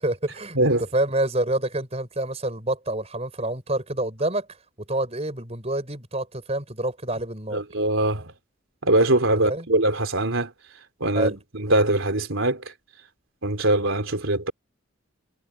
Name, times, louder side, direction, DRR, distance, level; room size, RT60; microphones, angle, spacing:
voice 1, 0.0-4.5 4.9-7.6 9.5-9.7 11.1-11.4, right 1 dB, 30° right, 6.4 m, -27 dB
voice 2, 7.5-8.3 8.8-10.5 11.0-11.3 11.6-12.6 13.4-14.5, right 1 dB, 80° right, 3.3 m, -22 dB
head